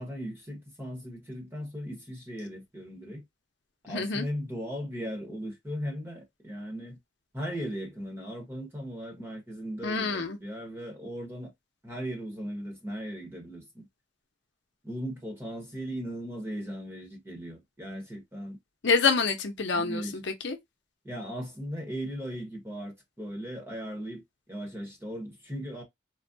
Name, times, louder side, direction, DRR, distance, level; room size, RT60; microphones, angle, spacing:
voice 1, 0.0-3.2 3.8-7.0 7.3-11.5 11.8-13.9 14.8-18.6 19.7-20.2 21.0-24.2 24.5-25.8, equal, 15° right, 1.1 m, -37 dB
voice 2, 3.9-4.2 9.8-10.4 18.8-20.6, left 4 dB, 75° left, 0.7 m, -27 dB
3.6 x 2.2 x 2.6 m
head